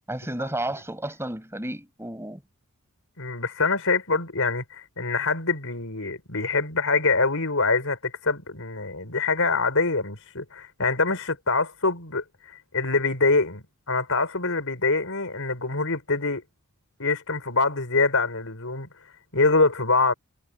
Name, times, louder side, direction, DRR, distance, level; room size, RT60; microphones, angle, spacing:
voice 1, 0.1-2.4, right 1 dB, 10° right, 7.0 m, -32 dB
voice 2, 3.2-16.4 17.0-18.9 19.3-20.1, left 3 dB, 65° left, 6.4 m, -25 dB
head